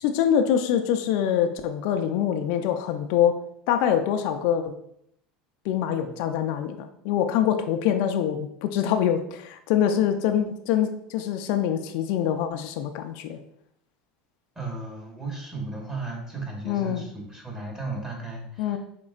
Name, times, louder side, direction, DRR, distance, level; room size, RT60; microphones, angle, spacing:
voice 1, 0.0-3.3 3.7-4.7 5.6-13.4 16.7-17.0 18.6-18.8, left 9 dB, 65° left, 6 dB, 0.4 m, -24 dB
voice 2, 14.5-18.8, right 3 dB, 15° right, -1 dB, 1.4 m, -35 dB
5.1 x 3.7 x 2.4 m, 0.72 s
supercardioid pair, 105°, 4 cm